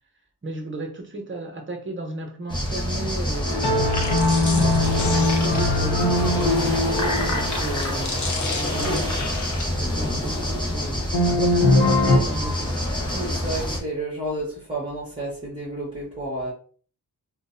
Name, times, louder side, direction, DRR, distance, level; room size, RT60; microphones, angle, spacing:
voice 1, 0.4-4.2 5.4-9.3 9.8-12.9, right 1 dB, 30° right, 0.7 m, -34 dB
sound 1, 2.5-13.8, left 1 dB, 10° left, 0.8 m, -26 dB
sound 2, 3.5-8.3 11.1-12.2, left 2 dB, 85° left, 0.8 m, -21 dB
sound 3, 3.8-6.0 6.6-9.6, left 3 dB, 45° left, 0.6 m, -32 dB
voice 2, 13.1-16.5, right 1 dB, 10° right, 1.3 m, -31 dB
3.6 x 2.2 x 2.6 m
wide cardioid pair, 110°, 40 cm